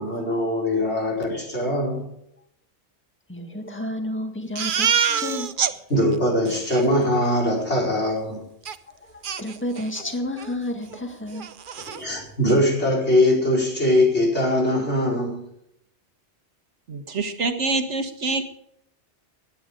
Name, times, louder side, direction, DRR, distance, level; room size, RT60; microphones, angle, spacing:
voice 1, 0.0-2.1 5.9-8.5 11.9-15.4, left 1 dB, 70° left, -1 dB, 5.3 m, -22 dB
voice 2, 3.3-5.5 8.9-11.9, left 1 dB, 10° left, 4 dB, 1.9 m, -31 dB
Crying sobbing, 4.6-5.7 6.1-6.2 6.5-6.8 8.7-8.8 9.2-10.0 10.4-10.5 10.9-11.0 11.3-12.0, right 7 dB, 50° right, 0.8 m, -26 dB
voice 3, 16.9-18.4, right 3 dB, 90° right, 7 dB, 1.9 m, -26 dB
17.0 x 10.5 x 5.2 m, 0.75 s
omnidirectional pair, 1.2 m